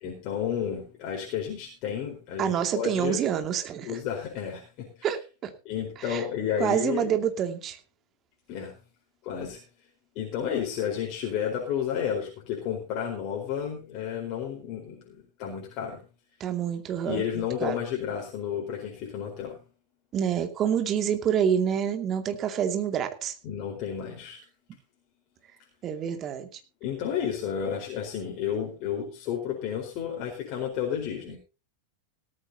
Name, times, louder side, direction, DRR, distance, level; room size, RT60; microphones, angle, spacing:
voice 1, 0.0-3.2 3.8-5.1 5.6-7.1 8.5-8.8 9.2-9.6 10.1-16.0 17.0-19.6 23.4-24.4 26.8-31.4, left 8 dB, 40° left, 0 dB, 4.5 m, -32 dB
voice 2, 2.4-4.0 5.0-5.5 6.0-6.2 6.6-7.8 16.4-17.8 20.1-23.4 25.8-26.6, right 9 dB, 30° right, 7 dB, 2.4 m, -27 dB
17.5 x 14.0 x 2.9 m, 0.31 s
figure-of-eight pair, 90°, 0 cm